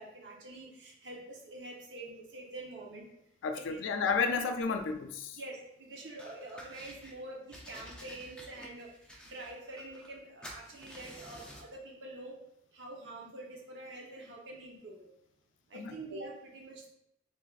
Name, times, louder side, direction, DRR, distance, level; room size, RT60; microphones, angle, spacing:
voice 1, 0.0-3.0 3.5-3.8 5.3-8.9 9.2-12.4 12.7-15.1 15.7-16.9, right 2 dB, 65° right, -2 dB, 1.0 m, -46 dB
voice 2, 3.4-5.4 15.7-16.0, left 5 dB, 85° left, 6 dB, 0.4 m, -32 dB
sound 1, 6.2-7.1 7.5-10.2 10.4-11.7, equal, 5° left, 0.5 m, -50 dB
4.0 x 3.4 x 2.4 m, 0.79 s
head